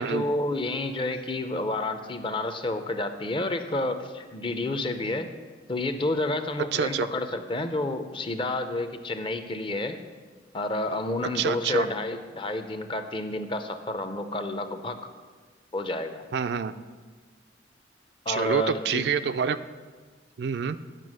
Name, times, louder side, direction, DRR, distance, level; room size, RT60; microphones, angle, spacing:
voice 1, 0.0-5.3 5.7-10.0 10.5-15.0 15.7-16.3 18.3-19.1, left 2 dB, 25° left, 8 dB, 0.5 m, -30 dB
voice 2, 6.7-7.1 11.3-11.9 16.3-16.7 18.3-19.6 20.4-20.8, right 6 dB, 60° right, 11 dB, 0.3 m, -27 dB
9.1 x 5.8 x 6.3 m, 1.4 s
head